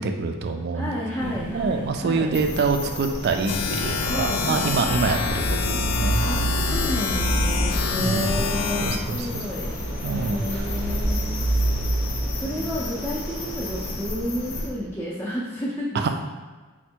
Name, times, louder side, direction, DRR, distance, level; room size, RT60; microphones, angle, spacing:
voice 1, 0.0-0.9 1.2-6.3 7.9-8.3 8.8-9.4 10.0-10.6 15.9-16.1, right 4 dB, 50° right, 6 dB, 0.4 m, -26 dB
voice 2, 0.7-2.3 4.0-4.7 5.1-5.2 6.2-9.8 10.3-11.4 12.4-16.1, equal, 10° left, -7 dB, 0.5 m, -31 dB
sound 1, 1.2-14.0, equal, 10° right, 0.8 m, -40 dB
sound 2, 2.3-14.7, equal, 70° left, 0.7 m, -28 dB
sound 3, 3.5-9.0, left 5 dB, 90° left, 0.3 m, -27 dB
4.3 x 2.2 x 4.4 m, 1.3 s
head